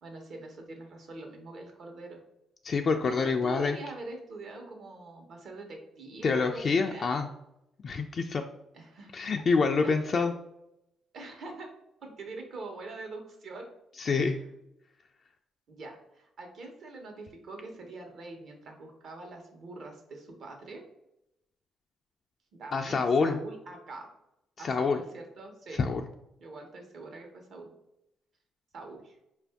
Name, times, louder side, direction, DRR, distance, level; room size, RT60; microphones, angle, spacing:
voice 1, 0.0-2.2 3.0-7.1 8.7-9.4 9.8-9.9 11.1-11.7 12.0-13.7 14.1-14.3 15.7-20.8 22.6-24.1 24.6-25.8 26.4-27.7 28.7-29.2, right 2 dB, 65° right, 3 dB, 1.0 m, -44 dB
voice 2, 2.6-3.8 6.2-7.3 7.8-8.4 9.1-10.3 14.0-14.4 22.7-23.4 24.6-25.0 25.8-26.0, left 4 dB, 45° left, 3 dB, 0.3 m, -26 dB
4.4 x 2.5 x 3.4 m, 0.85 s
cardioid pair, 90°, 0 cm